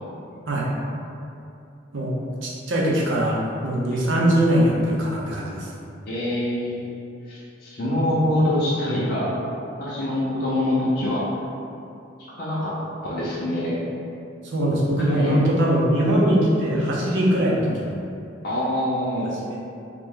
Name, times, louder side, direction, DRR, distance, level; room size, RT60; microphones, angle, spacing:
voice 1, 2.4-5.7 14.4-18.0 19.3-19.6, equal, 80° right, -5 dB, 0.7 m, -21 dB
voice 2, 6.1-6.7 7.3-9.3 9.8-11.3 12.4-12.7 13.0-13.8 15.1-15.3 18.4-19.3, left 1 dB, 50° left, -9 dB, 0.6 m, -24 dB
3.0 x 2.1 x 3.7 m, 2.6 s
head